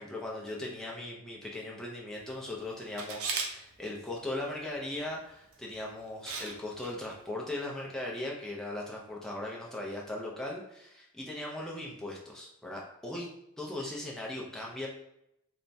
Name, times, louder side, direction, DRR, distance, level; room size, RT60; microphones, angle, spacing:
voice 1, 0.0-13.3 13.6-14.9, left 1 dB, ahead, -3 dB, 0.3 m, -38 dB
Camera, 3.0-3.5 5.5-5.7 6.3-6.5 6.8-6.9, right 4 dB, 80° right, 0.5 m, -34 dB
3.2 x 2.0 x 2.6 m, 0.79 s
head